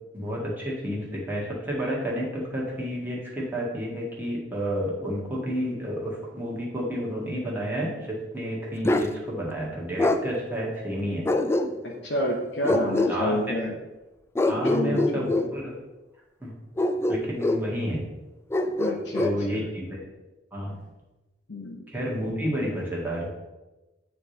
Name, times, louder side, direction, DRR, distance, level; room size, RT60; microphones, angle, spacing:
voice 1, 0.1-11.3 12.7-12.8 13.1-13.4 14.5-15.7 16.4-16.5 17.1-18.0 19.2-20.0 20.5-20.8 21.9-23.3, equal, 10° right, -5 dB, 1.8 m, -30 dB
Bark, 8.8-9.1 10.0-10.2 11.2-12.0 12.6-13.2 14.3-15.5 16.8-17.7 18.5-19.4, left 2 dB, 15° left, 0.3 m, -24 dB
voice 2, 11.8-13.7 14.4-15.5 18.8-19.7 21.5-21.8, left 1 dB, 70° left, -3 dB, 0.9 m, -30 dB
9.1 x 3.3 x 4.3 m, 1.1 s
head